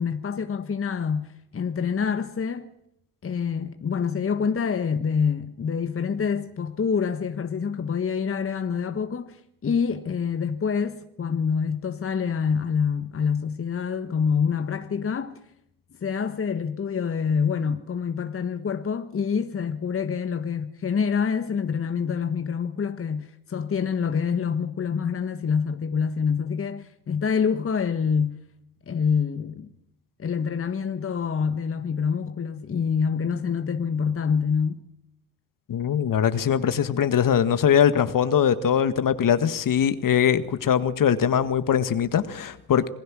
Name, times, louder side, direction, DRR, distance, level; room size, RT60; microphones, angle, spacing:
voice 1, 0.0-2.7 3.2-15.4 16.0-28.4 28.9-29.7 30.2-34.8, left 6 dB, 30° left, 1.4 m, -26 dB
voice 2, 35.7-42.9, left 8 dB, 45° left, 1.7 m, -22 dB
27.5 x 20.0 x 6.3 m
hypercardioid pair, 50°, 45 cm